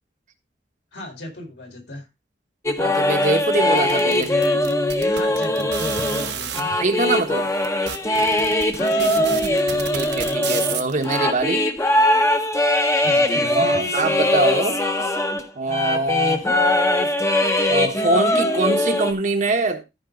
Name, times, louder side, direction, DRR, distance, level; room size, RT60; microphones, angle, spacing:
voice 1, 0.9-2.1 5.1-6.8 8.8-9.8 13.0-13.8, left 1 dB, 70° left, 4.2 m, -35 dB
sound 1, 2.7-15.4 15.7-19.1, left 1 dB, 15° left, 1.2 m, -21 dB
voice 2, 2.8-4.4 6.8-7.5 9.9-11.7 13.5-14.8 15.5-16.4 17.7-19.8, right 3 dB, 45° right, 1.3 m, -23 dB
sound 2, 3.8-6.6 7.3-7.4 7.6-11.2, right 9 dB, 70° right, 1.3 m, -31 dB
14.0 x 5.4 x 3.8 m
head